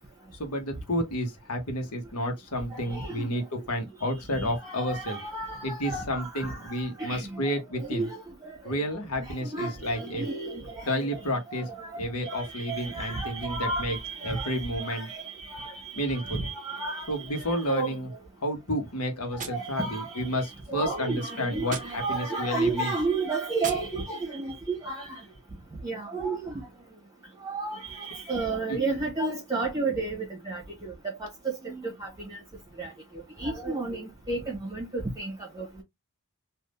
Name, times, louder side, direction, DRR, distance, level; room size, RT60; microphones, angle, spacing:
voice 1, 0.4-5.2 5.6-8.1 8.6-10.3 10.8-11.7 12.0-14.0 14.2-15.1 16.0-16.4 17.1-18.1 18.4-22.9 28.7-28.8, equal, 90° left, 1.1 m, -31 dB
voice 2, 2.7-3.3 4.3-6.7 7.0-7.5 7.8-8.2 8.7-8.8 9.2-11.2 11.5-17.9 19.3-25.2 25.8-26.6 27.4-30.9 31.2-32.4 32.8-32.9 33.4-35.8, right 3 dB, 20° right, 1.0 m, -33 dB
Gunshot gunfire, 19.4-20.5 21.6-22.5 23.6-24.5, right 6 dB, 35° right, 0.6 m, -41 dB
3.5 x 2.5 x 2.4 m
head